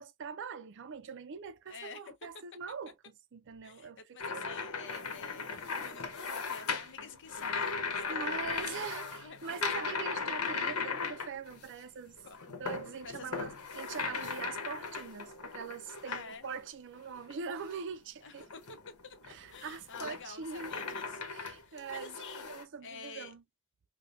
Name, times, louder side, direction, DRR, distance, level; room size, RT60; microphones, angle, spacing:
voice 1, 0.0-4.4 8.1-12.2 12.5-18.4 19.2-20.7 21.2-22.2 22.5-23.4, right 5 dB, 55° right, 0.5 m, -43 dB
voice 2, 1.7-2.1 3.6-9.6 12.2-12.4 13.0-13.3 16.0-16.5 18.2-18.8 19.0-21.2 21.6-22.5 22.8-23.3, left 5 dB, 55° left, 0.7 m, -49 dB
sound 1, 4.2-11.8 12.2-16.7 17.2-17.8 18.4-22.6, left 5 dB, 80° left, 1.0 m, -38 dB
4.9 x 2.3 x 2.5 m
head